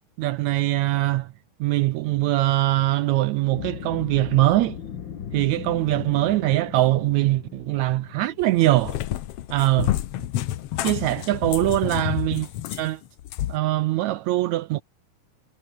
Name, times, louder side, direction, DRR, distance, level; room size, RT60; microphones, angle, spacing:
voice 1, 0.2-1.3 1.6-4.8 5.3-9.0 9.5-10.0 10.8-13.0 13.5-14.8, right 16 dB, 80° right, 1.7 m, -22 dB
sound 1, 3.5-9.8, left 8 dB, 50° left, 1.6 m, -38 dB
Cat, 8.4-13.6, left 13 dB, 70° left, 1.5 m, -29 dB
omnidirectional pair, 3.8 m